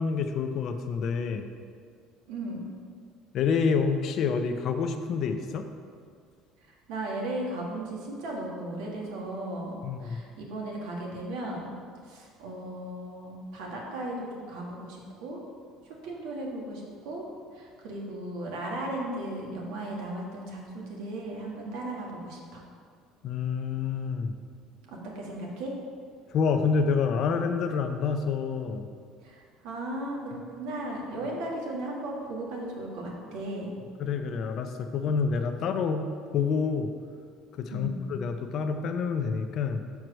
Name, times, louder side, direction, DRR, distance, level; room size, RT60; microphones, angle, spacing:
voice 1, 0.0-1.5 3.3-5.7 9.8-10.2 23.2-24.4 26.3-28.9 34.0-36.9 37.6-39.8, left 5 dB, 40° left, 7 dB, 0.5 m, -28 dB
voice 2, 2.3-2.7 6.7-11.8 12.0-15.4 15.8-17.2 17.5-22.6 24.9-25.7 29.2-33.7 37.7-38.0, right 1 dB, 85° right, -2 dB, 1.7 m, -36 dB
6.5 x 4.6 x 6.2 m, 2.1 s
cardioid pair, 165°, 0 cm